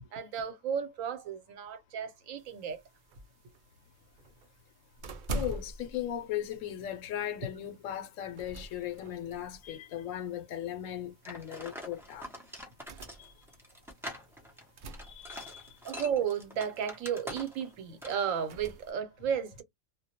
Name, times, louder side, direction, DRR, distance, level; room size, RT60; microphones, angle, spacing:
voice 1, 0.1-2.8 15.8-19.6, right 8 dB, 85° right, 1.1 m, -33 dB
sound 1, 2.4-18.9, right 2 dB, 65° right, 0.5 m, -47 dB
voice 2, 5.3-12.3 13.2-13.3 15.0-15.7, left 11 dB, 80° left, 1.0 m, -37 dB
sound 2, 11.2-17.7 18.0-18.3, equal, 5° right, 0.4 m, -44 dB
2.3 x 2.1 x 2.8 m
omnidirectional pair, 1.3 m